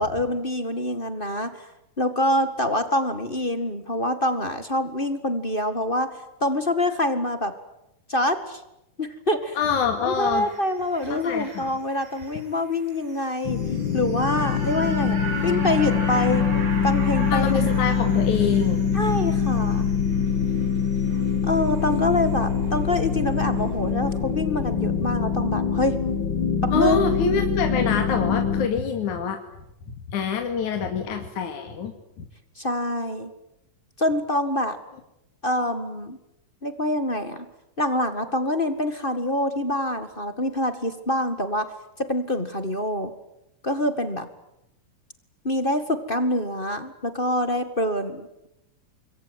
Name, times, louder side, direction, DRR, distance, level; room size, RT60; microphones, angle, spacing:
voice 1, 0.0-1.7 2.0-7.5 8.1-8.6 9.0-9.6 10.0-13.6 13.9-15.2 15.4-16.5 16.8-17.7 18.9-19.8 21.4-26.0 26.6-27.0 32.6-33.3 34.0-34.8 35.4-36.2 36.6-37.4 37.8-41.7 42.0-43.1 43.6-44.3 45.4-48.5, left 1 dB, 20° left, 9 dB, 1.5 m, -25 dB
voice 2, 9.6-10.5 11.1-11.7 17.3-18.8 26.7-29.4 30.1-31.9 32.2-32.3, left 6 dB, 65° left, 5 dB, 3.5 m, -25 dB
sound 1, 10.5-22.8 23.1-23.2, right 2 dB, 75° right, 9.3 m, -39 dB
sound 2, 13.4-28.7, left 6 dB, 50° left, 1.5 m, -24 dB
26.0 x 23.5 x 9.5 m, 0.85 s
omnidirectional pair, 3.7 m